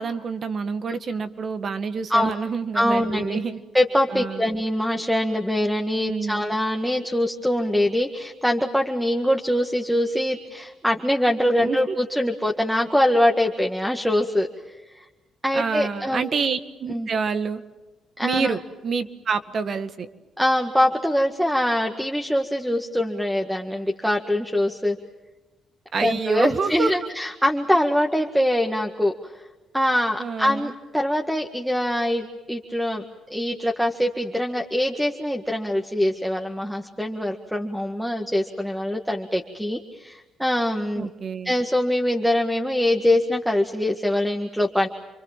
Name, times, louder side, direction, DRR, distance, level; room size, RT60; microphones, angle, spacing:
voice 1, 0.0-3.6 4.1-4.5 6.0-6.4 11.6-11.9 15.5-17.6 18.2-20.1 25.9-27.0 30.2-30.7 41.0-41.5, right 5 dB, 50° right, 10 dB, 1.8 m, -27 dB
voice 2, 2.7-3.4 3.7-14.5 14.9-15.0 15.4-16.3 16.9-17.1 18.2-18.5 20.4-25.0 26.0-29.4 29.7-33.0 33.3-41.1 41.4-44.9, left 1 dB, ahead, 2 dB, 1.9 m, -23 dB
29.0 x 24.0 x 7.5 m, 1.1 s
cardioid pair, 90°, 0 cm